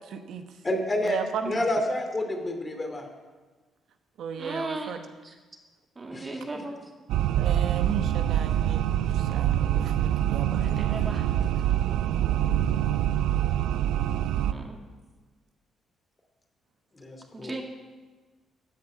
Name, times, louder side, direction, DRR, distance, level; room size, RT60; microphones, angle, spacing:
voice 1, 0.1-0.4 1.0-1.5 4.2-5.0 7.4-8.8 9.1-10.6 12.0-12.3 14.4-14.7, right 7 dB, 75° right, 7 dB, 0.9 m, -35 dB
voice 2, 0.6-1.2 1.4-3.1 6.1-6.6 12.4-12.6 16.9-17.5, left 1 dB, 25° left, 3 dB, 2.7 m, -29 dB
voice 3, 4.4-5.0 5.2-5.4 6.0-6.9 10.6-11.3 14.5-14.8 17.3-17.6, right 2 dB, 25° right, 2 dB, 2.3 m, -36 dB
sound 1, 7.1-14.5, right 11 dB, 90° right, 0.4 m, -25 dB
15.5 x 5.4 x 9.8 m, 1.3 s
cardioid pair, 90°, 0 cm